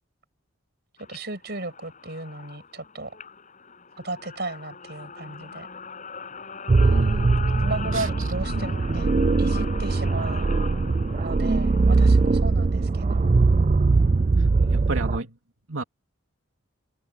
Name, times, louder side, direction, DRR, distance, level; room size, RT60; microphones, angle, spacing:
sound 1, 1.0-12.4, left 5 dB, 35° left, 6.9 m, -40 dB
voice 1, 1.1-3.2 4.0-5.7 7.6-9.1 9.4-10.4 11.2-13.4 14.6-14.9, right 2 dB, 50° right, 6.4 m, -35 dB
sound 2, 6.7-15.2, right 3 dB, 35° right, 0.4 m, -21 dB
voice 2, 6.8-7.4 7.9-8.1 8.5-8.7 14.7-15.3 15.7-15.8, right 2 dB, 70° right, 3.1 m, -32 dB
head